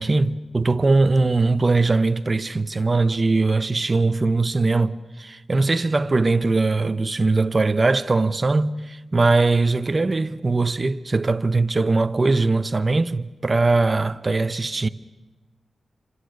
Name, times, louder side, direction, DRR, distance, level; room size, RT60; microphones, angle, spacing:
voice 1, 0.0-14.9, right 3 dB, 30° right, 0.9 m, -21 dB
28.5 x 26.0 x 6.6 m
wide cardioid pair, 115°, 0 cm